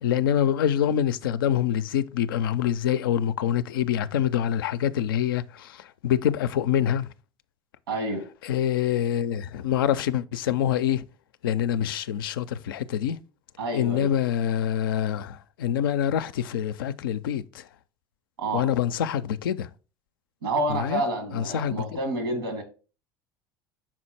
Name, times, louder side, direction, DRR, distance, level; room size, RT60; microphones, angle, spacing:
voice 1, 0.0-7.1 8.4-11.0 11.4-13.2 13.7-17.6 18.5-19.7 20.7-21.0 21.3-22.0, left 10 dB, 75° left, 0.4 m, -25 dB
voice 2, 7.9-8.2 13.6-14.1 18.4-18.7 20.4-22.6, right 2 dB, 80° right, 1.8 m, -29 dB
6.0 x 4.4 x 4.2 m
hypercardioid pair, 70°, 12 cm